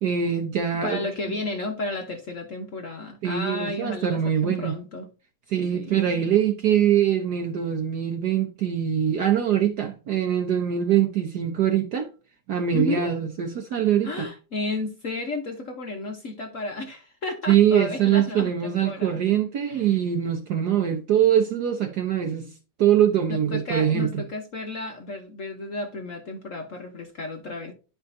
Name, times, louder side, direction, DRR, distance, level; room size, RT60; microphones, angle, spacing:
voice 1, 0.0-1.0 3.2-4.7 5.5-12.1 12.5-14.3 17.5-22.5 22.8-24.2, right 9 dB, 60° right, 1.1 m, -23 dB
voice 2, 0.8-5.1 5.7-6.3 12.7-13.1 14.0-19.2 19.7-20.0 23.5-27.7, left 2 dB, 55° left, 0.8 m, -33 dB
10.5 x 5.0 x 2.6 m
omnidirectional pair, 2.4 m